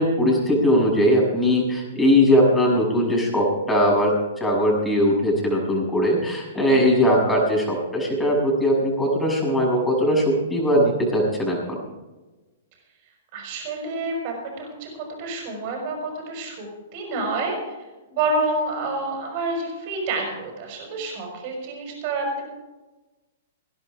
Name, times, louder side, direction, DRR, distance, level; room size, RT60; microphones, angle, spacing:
voice 1, 0.0-11.8, equal, 5° left, -3 dB, 6.7 m, -20 dB
voice 2, 13.3-16.7 16.9-17.8 18.1-22.5, right 2 dB, 50° right, 2 dB, 5.9 m, -28 dB
19.0 x 11.5 x 5.0 m, 1.2 s
hypercardioid pair, 115°, 0 cm